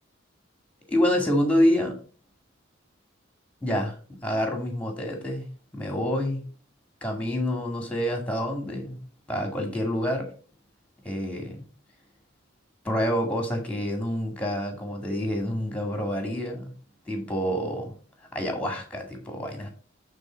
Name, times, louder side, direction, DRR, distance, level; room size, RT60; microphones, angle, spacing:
voice 1, 0.9-2.0 3.6-5.5 5.7-6.4 7.0-9.0 9.3-10.3 11.0-11.6 12.8-16.7 17.1-17.9 18.3-19.7, equal, 5° left, 2.1 m, -27 dB
8.9 x 4.1 x 5.2 m
head